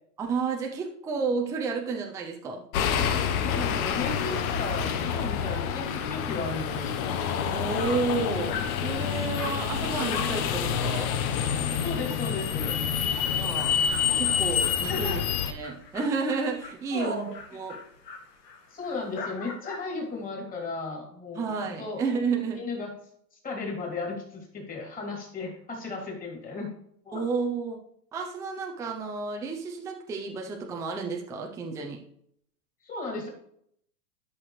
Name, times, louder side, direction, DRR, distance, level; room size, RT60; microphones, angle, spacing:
voice 1, 0.2-2.6 7.5-11.1 13.4-13.8 14.1-15.2 15.5-17.8 21.3-22.6 27.1-27.8 28.1-32.0, right 4 dB, 5° right, 1 dB, 0.5 m, -31 dB
sound 1, 2.7-15.5, left 8 dB, 60° left, 1.2 m, -28 dB
voice 2, 3.4-7.0 11.8-12.7 14.9-15.2 16.9-17.3 18.7-22.0 22.5-22.9 23.4-26.7 27.0-27.3 32.8-33.3, left 3 dB, 15° left, -1 dB, 3.0 m, -35 dB
Dog, 7.8-8.1 8.5-8.8 9.3-9.6 10.1-10.4 10.8-10.9 11.3-11.4 11.7-11.8 12.1-19.9, left 4 dB, 75° left, 2.6 m, -42 dB
12.0 x 5.9 x 3.2 m, 0.68 s
hypercardioid pair, 130°, 49 cm